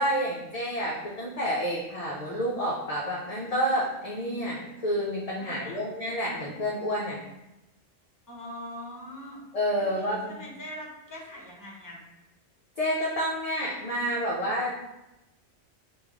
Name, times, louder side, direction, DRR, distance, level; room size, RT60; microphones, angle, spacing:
voice 1, 0.0-7.2 9.5-10.4 12.8-14.8, equal, 40° left, -4 dB, 0.6 m, -29 dB
voice 2, 5.4-5.8 8.3-9.4 9.7-12.0, left 1 dB, 20° left, -3 dB, 1.0 m, -42 dB
3.5 x 3.0 x 4.8 m, 0.98 s
omnidirectional pair, 1.2 m